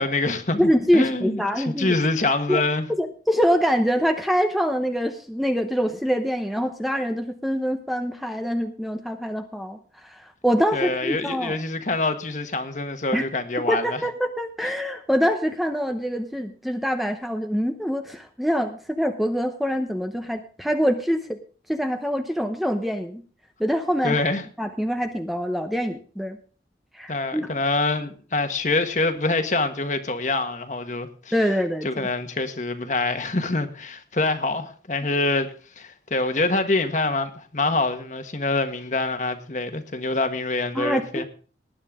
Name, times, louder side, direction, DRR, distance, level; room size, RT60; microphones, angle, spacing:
voice 1, 0.0-2.9 10.7-14.0 24.0-24.4 27.1-31.3 31.8-35.5 35.8-41.2, left 2 dB, 45° left, 1.4 m, -25 dB
voice 2, 0.6-1.9 2.5-2.6 3.0-9.8 10.4-11.6 13.1-13.2 13.7-21.4 21.7-23.2 23.6-24.2 24.6-26.4 26.9-27.5 31.3-31.9 40.7-41.2, equal, ahead, 0.8 m, -24 dB
19.0 x 9.6 x 3.7 m
head